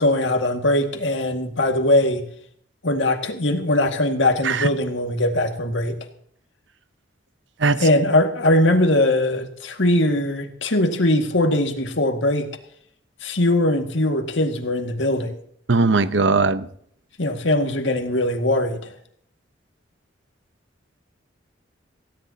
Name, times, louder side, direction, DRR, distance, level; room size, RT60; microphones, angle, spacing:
voice 1, 0.0-2.2 2.8-6.0 7.8-12.5 13.2-15.4 17.2-18.9, left 1 dB, 85° left, 5 dB, 2.0 m, -21 dB
voice 2, 15.7-16.7, right 3 dB, 75° right, 13 dB, 0.9 m, -19 dB
19.0 x 16.5 x 2.9 m, 0.65 s
head